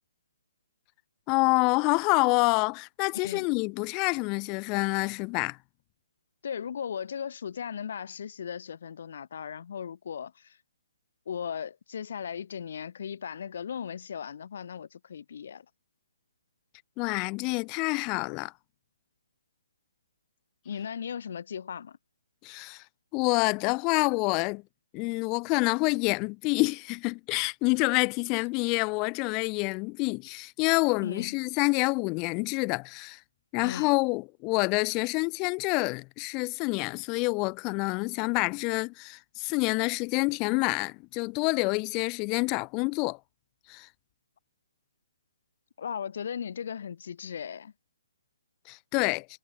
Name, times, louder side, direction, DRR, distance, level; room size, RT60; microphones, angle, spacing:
voice 1, 1.3-5.6 17.0-18.5 22.4-22.8 23.1-24.6 24.9-33.2 33.5-43.2 43.7-43.9 48.7-49.3, left 29 dB, 25° left, 1.3 m, -27 dB
voice 2, 3.1-3.5 6.4-10.6 11.3-15.6 20.6-22.0 31.0-31.3 33.6-33.9 45.8-47.7, left 7 dB, 55° left, 1.4 m, -37 dB
figure-of-eight pair, 145°, 0 cm